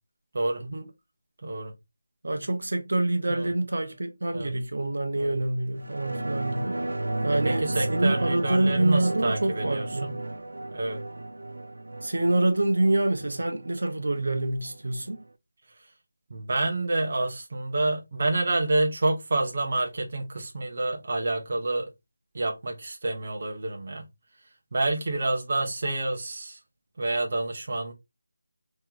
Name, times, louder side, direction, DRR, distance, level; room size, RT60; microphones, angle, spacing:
voice 1, 1.4-1.7 3.3-3.5 4.3-4.5 5.1-5.4 7.4-10.1 10.7-11.0 16.3-21.9 22.3-24.1 24.7-26.6 27.0-27.9, right 2 dB, 35° right, 0.7 m, -28 dB
voice 2, 2.2-6.8 7.2-10.2 12.0-15.2, right 2 dB, 65° right, 0.8 m, -26 dB
sound 1, 5.8-14.8 15.1-15.2, right 2 dB, 90° right, 0.5 m, -33 dB
3.0 x 2.9 x 3.7 m
figure-of-eight pair, 180°, 0 cm